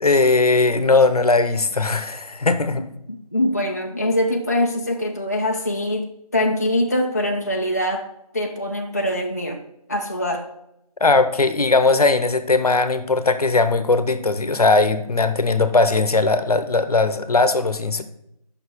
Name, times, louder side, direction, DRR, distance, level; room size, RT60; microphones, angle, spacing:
voice 1, 0.0-2.9 11.0-18.0, left 3 dB, 70° left, 10 dB, 0.8 m, -19 dB
voice 2, 2.7-8.1 8.3-9.6 9.9-10.5, left 1 dB, 25° left, 1 dB, 0.4 m, -23 dB
6.6 x 5.6 x 3.5 m, 0.80 s
figure-of-eight pair, 165°, 20 cm